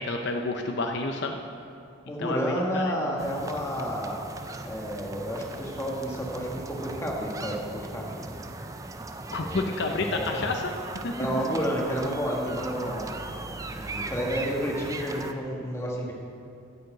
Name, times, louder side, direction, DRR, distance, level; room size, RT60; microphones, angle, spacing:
voice 1, 0.0-1.4 2.2-2.9 9.3-10.7 11.0-11.3, left 3 dB, 60° left, 4 dB, 0.6 m, -30 dB
voice 2, 2.1-4.3 4.6-8.4 9.4-9.6 10.0-10.4 11.1-13.1 13.5-16.1, equal, 15° left, -2 dB, 1.4 m, -31 dB
sound 1, 3.2-15.3, right 2 dB, 15° right, 0.4 m, -38 dB
9.3 x 6.6 x 7.8 m, 2.5 s
head